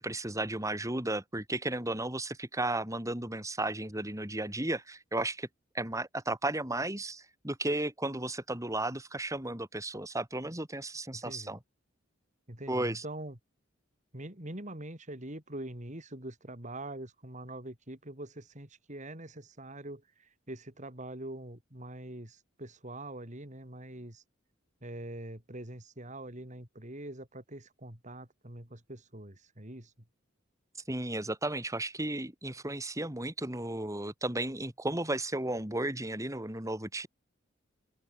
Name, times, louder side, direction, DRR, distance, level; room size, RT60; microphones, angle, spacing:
voice 1, 0.0-5.5 5.7-11.6 12.7-13.0 30.9-37.1, right 2 dB, 15° right, 3.7 m, -34 dB
voice 2, 11.1-11.6 12.5-13.4 14.1-24.2 24.8-29.9, right 1 dB, 40° right, 4.5 m, -44 dB
open air
head